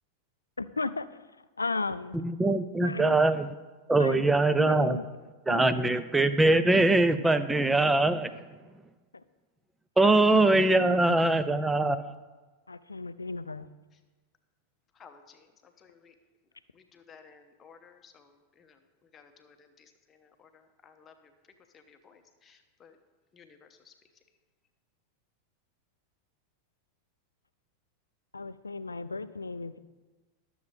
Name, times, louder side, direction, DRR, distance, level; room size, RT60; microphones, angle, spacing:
voice 1, 0.6-1.1 1.6-2.2 2.8-3.2 3.9-4.2 4.6-5.0 5.5-6.0 9.1-9.2 10.0-10.3 10.7-11.2 12.7-13.7 28.3-29.8, left 3 dB, 80° left, 0.3 m, -35 dB
voice 2, 2.1-3.5 3.9-5.0 5.5-8.3 10.0-12.1, right 2 dB, 10° right, 0.4 m, -23 dB
voice 3, 15.0-15.5 15.8-16.1 16.7-18.8 19.1-21.3 21.7-23.0 23.3-23.9, left 6 dB, 25° left, 0.9 m, -56 dB
12.0 x 7.0 x 3.2 m
figure-of-eight pair, 90°, 0 cm